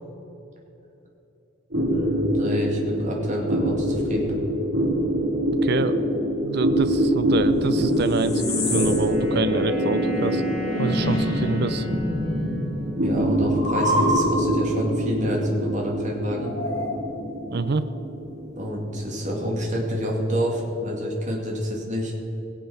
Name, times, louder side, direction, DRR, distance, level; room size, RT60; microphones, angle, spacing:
sound 1, 1.7-20.5, equal, 70° right, 3.0 m, -25 dB
voice 1, 1.8-4.4 13.0-16.5 18.6-22.1, equal, 40° right, -1 dB, 2.3 m, -27 dB
voice 2, 5.6-6.0 6.4-10.4 10.8-11.9 17.5-17.8, right 4 dB, 55° right, 12 dB, 0.5 m, -26 dB
sound 2, 6.5-12.0 12.3-14.7 16.4-17.4, left 1 dB, 55° left, 3.4 m, -29 dB
sound 3, 7.8-14.2, equal, ahead, 3.4 m, -38 dB
18.0 x 7.5 x 5.7 m, 2.9 s
head